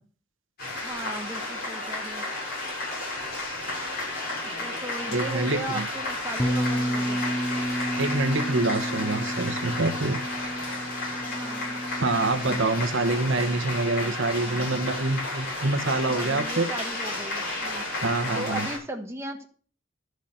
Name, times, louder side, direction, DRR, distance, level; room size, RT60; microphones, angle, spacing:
sound 1, 0.6-18.8, left 2 dB, 50° left, 7.2 m, -32 dB
voice 1, 0.8-2.2 4.4-7.3 11.2-11.8 15.8-17.9 18.3-19.4, right 1 dB, 15° right, 2 dB, 1.3 m, -37 dB
voice 2, 5.1-5.8 8.0-10.2 12.0-16.7 18.0-18.7, right 2 dB, 65° right, 7 dB, 1.2 m, -26 dB
Bass guitar, 6.4-12.6, equal, 15° left, 0.5 m, -31 dB
11.5 x 6.6 x 6.5 m, 0.43 s
head